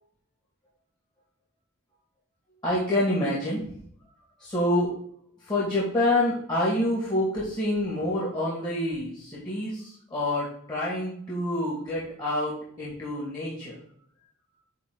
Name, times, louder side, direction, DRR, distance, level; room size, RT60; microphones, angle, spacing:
voice 1, 2.6-3.6 4.4-4.9 5.5-13.8, left 1 dB, 20° left, -6 dB, 2.4 m, -27 dB
10.0 x 3.8 x 4.0 m, 0.62 s
head